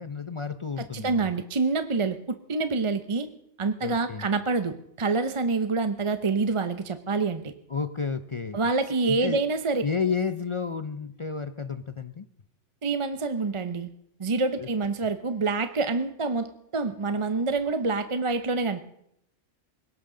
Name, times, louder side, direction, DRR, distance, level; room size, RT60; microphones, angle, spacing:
voice 1, 0.0-1.3 3.8-4.3 7.7-8.6 9.1-9.4 9.8-12.3 14.6-14.7, left 5 dB, 40° left, 12 dB, 0.4 m, -31 dB
voice 2, 0.9-3.3 3.6-7.4 8.5-9.8 12.8-13.9 14.2-18.8, right 3 dB, 30° right, 10 dB, 0.6 m, -27 dB
21.5 x 18.0 x 3.8 m, 0.75 s
omnidirectional pair, 1.3 m